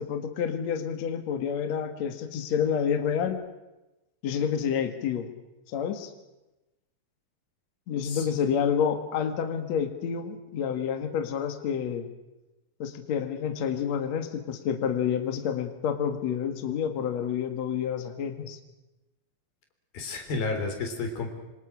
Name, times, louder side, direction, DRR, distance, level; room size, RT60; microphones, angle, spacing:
voice 1, 0.0-3.4 4.2-5.3 5.7-6.1 7.9-12.1 12.8-18.6, left 7 dB, 55° left, 6 dB, 2.6 m, -29 dB
voice 2, 19.9-21.3, left 3 dB, 85° left, 4 dB, 5.6 m, -31 dB
26.5 x 26.5 x 6.3 m, 1.0 s
omnidirectional pair, 4.2 m